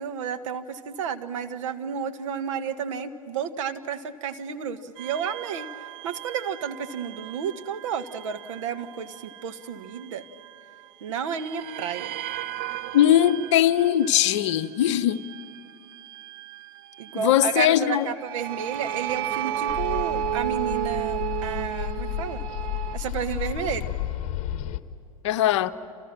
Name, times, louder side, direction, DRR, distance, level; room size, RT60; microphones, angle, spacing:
voice 1, 0.0-5.7 6.0-9.2 9.4-10.2 11.0-12.1 17.0-22.4 22.9-23.9, right 7 dB, 55° right, 1.5 m, -31 dB
sound 1, 5.0-10.9 11.3-23.0, right 12 dB, 40° right, 0.9 m, -34 dB
voice 2, 12.9-15.3 17.1-18.1 25.2-25.7, left 12 dB, 50° left, 0.9 m, -20 dB
sound 2, 19.7-24.8, left 14 dB, 35° left, 1.3 m, -32 dB
29.0 x 28.5 x 6.0 m
figure-of-eight pair, 95°, 19 cm